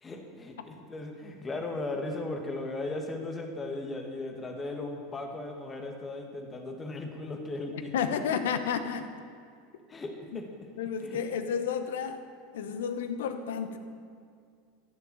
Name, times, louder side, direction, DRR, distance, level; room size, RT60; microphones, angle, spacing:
voice 1, 0.0-8.1 9.9-10.4 11.0-11.2, left 2 dB, 20° left, 2 dB, 2.1 m, -37 dB
voice 2, 7.9-9.1 10.3-10.4 10.8-12.2 12.5-13.8, left 7 dB, 70° left, 10 dB, 1.0 m, -31 dB
14.5 x 6.9 x 7.9 m, 2.2 s
figure-of-eight pair, 85°, 0 cm